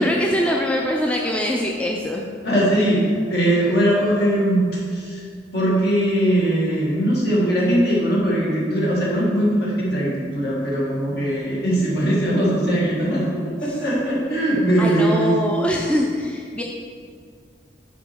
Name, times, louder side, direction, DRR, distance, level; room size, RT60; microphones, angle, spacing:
voice 1, 0.0-2.3 13.7-13.8 14.8-16.6, equal, 5° left, -1 dB, 0.4 m, -23 dB
voice 2, 2.4-5.2 5.5-15.3, right 1 dB, 55° left, -5 dB, 1.8 m, -20 dB
6.2 x 5.5 x 4.3 m, 2.1 s
head